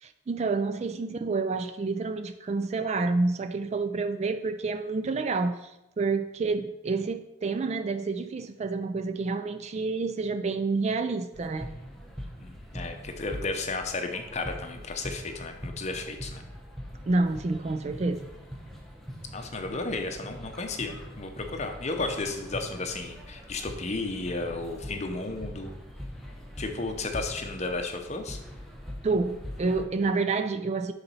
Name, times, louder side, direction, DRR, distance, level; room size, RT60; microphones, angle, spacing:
voice 1, 0.0-11.7 17.1-18.3 29.0-30.9, right 3 dB, 35° right, 9 dB, 0.3 m, -28 dB
sound 1, 11.3-29.9, equal, ahead, 0.8 m, -42 dB
voice 2, 12.4-16.4 19.3-25.7 26.6-28.4, left 3 dB, 35° left, 5 dB, 0.7 m, -33 dB
7.0 x 4.0 x 5.4 m, 0.93 s
head